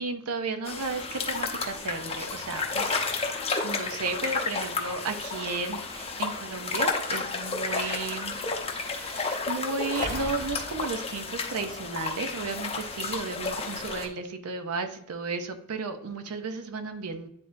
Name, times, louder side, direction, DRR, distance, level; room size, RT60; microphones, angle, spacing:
voice 1, 0.0-8.4 8.7-17.3, right 4 dB, 80° right, 7 dB, 0.7 m, -34 dB
sound 1, 0.6-14.1, left 4 dB, 25° left, 0.8 m, -32 dB
sound 2, 9.9-11.2 12.6-12.7, equal, 40° right, 1.6 m, -39 dB
9.7 x 3.9 x 2.6 m, 0.76 s
head